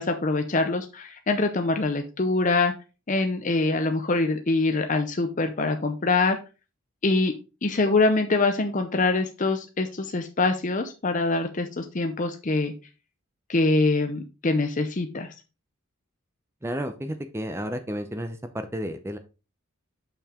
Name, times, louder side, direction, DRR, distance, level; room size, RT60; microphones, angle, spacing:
voice 1, 0.0-2.7 3.1-6.4 7.0-7.3 7.6-12.7 13.5-15.3, left 3 dB, 35° left, 6 dB, 0.6 m, -24 dB
voice 2, 16.6-19.2, equal, 10° right, 8 dB, 0.6 m, -32 dB
6.8 x 5.7 x 3.6 m, 0.30 s
head